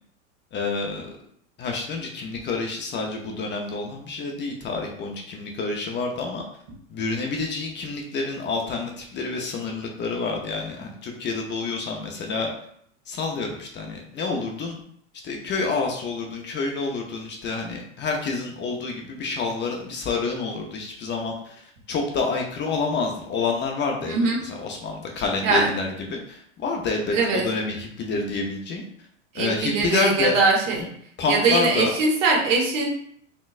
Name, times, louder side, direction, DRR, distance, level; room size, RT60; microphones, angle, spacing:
voice 1, 0.5-1.1 1.6-6.4 6.9-12.5 13.1-14.8 15.2-21.4 21.9-28.8 29.3-30.3 30.8-30.9 31.2-31.9, left 4 dB, 25° left, 1 dB, 0.7 m, -28 dB
voice 2, 24.1-24.4 25.4-25.7 27.1-27.5 29.3-30.8 31.3-32.8, right 3 dB, 65° right, -1 dB, 1.4 m, -21 dB
4.3 x 3.0 x 2.5 m, 0.67 s
hypercardioid pair, 100°, 40 cm